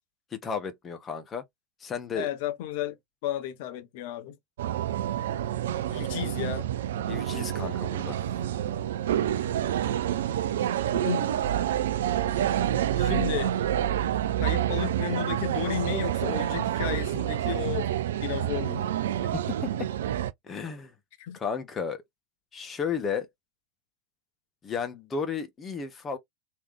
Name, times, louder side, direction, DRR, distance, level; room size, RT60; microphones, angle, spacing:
voice 1, 0.3-1.4 1.8-2.3 7.1-8.2 19.5-19.9 20.4-20.9 21.3-22.0 22.5-23.3 24.6-26.2, left 6 dB, 20° left, 1.3 m, -33 dB
voice 2, 2.1-3.0 3.2-4.4 5.9-6.7 10.9-11.3 13.0-13.5 14.4-18.9 21.2-21.4, left 11 dB, 50° left, 0.9 m, -33 dB
sound 1, 4.6-20.3, right 11 dB, 60° right, 0.4 m, -28 dB
3.4 x 3.0 x 3.4 m
figure-of-eight pair, 90°, 0 cm